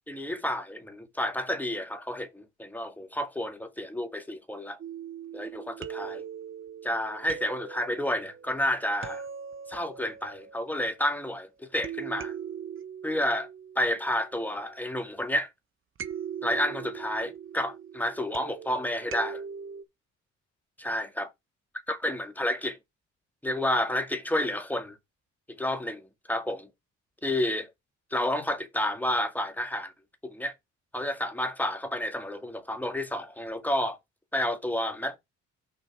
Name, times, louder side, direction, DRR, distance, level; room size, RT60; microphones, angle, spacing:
voice 1, 0.1-4.8 5.3-6.2 6.8-9.2 9.7-12.3 13.0-13.5 13.8-15.5 16.4-19.4 20.8-21.3 21.9-22.8 23.4-25.0 25.6-26.7 27.2-27.7 28.1-29.9 30.2-30.5 30.9-34.0 34.3-35.2, left 1 dB, 5° left, 2.0 m, -30 dB
sound 1, 4.8-11.2 11.8-14.8 16.0-19.8, right 8 dB, 45° right, 0.9 m, -41 dB
6.5 x 4.1 x 6.1 m
cardioid pair, 90°, 30 cm